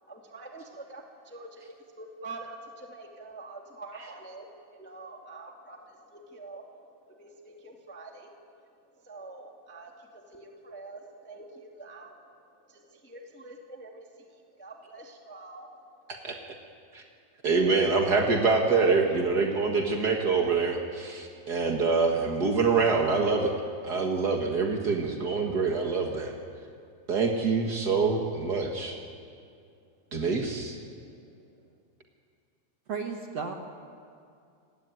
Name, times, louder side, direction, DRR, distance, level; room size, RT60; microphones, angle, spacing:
voice 1, 0.0-4.5 4.7-8.4 8.9-12.3 12.7-15.8 31.0-31.4, right 2 dB, 5° left, 1 dB, 1.0 m, -46 dB
voice 2, 17.4-23.5 23.8-26.3 27.1-29.0 30.1-30.8, right 4 dB, 80° right, 2 dB, 0.9 m, -25 dB
voice 3, 32.9-33.5, right 5 dB, 55° right, 3 dB, 1.8 m, -33 dB
30.0 x 18.0 x 9.3 m, 2.3 s
omnidirectional pair, 4.7 m